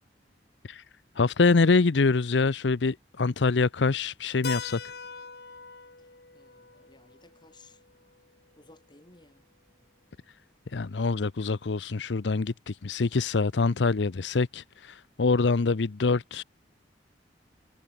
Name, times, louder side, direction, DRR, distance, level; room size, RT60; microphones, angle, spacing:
voice 1, 1.2-4.8 10.7-16.4, left 4 dB, 80° left, 0.7 m, -25 dB
Keyboard (musical), 4.4-8.9, left 5 dB, 65° left, 4.3 m, -42 dB
voice 2, 6.3-7.8 8.6-9.5, left 2 dB, 25° left, 4.1 m, -57 dB
head